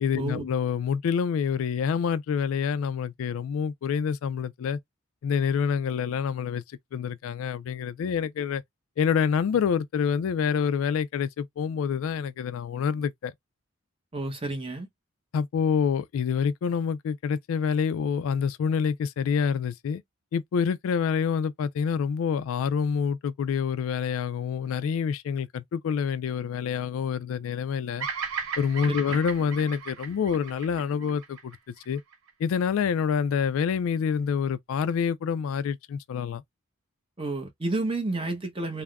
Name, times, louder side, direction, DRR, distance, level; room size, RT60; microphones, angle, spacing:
voice 1, 0.0-4.8 5.2-6.6 6.9-8.6 9.0-13.3 15.3-20.0 20.3-28.1 28.6-31.6 31.9-32.0 32.4-36.4, left 6 dB, 80° left, 0.3 m, -27 dB
voice 2, 14.1-14.9 28.9-29.2 37.2-38.8, right 2 dB, 25° right, 0.7 m, -30 dB
Bird vocalization bird call bird song, 28.0-32.3, right 6 dB, 80° right, 0.7 m, -36 dB
3.4 x 2.0 x 2.2 m
head